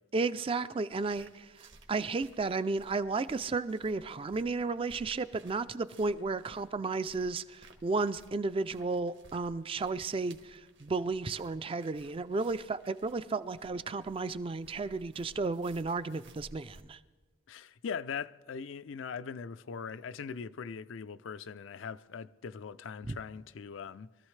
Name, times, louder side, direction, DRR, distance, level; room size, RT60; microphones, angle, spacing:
voice 1, 0.1-17.0 23.1-23.2, right 3 dB, 30° right, 0.4 m, -33 dB
sound 1, 0.9-16.8, right 2 dB, 65° right, 1.4 m, -59 dB
voice 2, 17.5-24.1, left 6 dB, 75° left, 0.4 m, -41 dB
23.5 x 13.5 x 3.2 m
head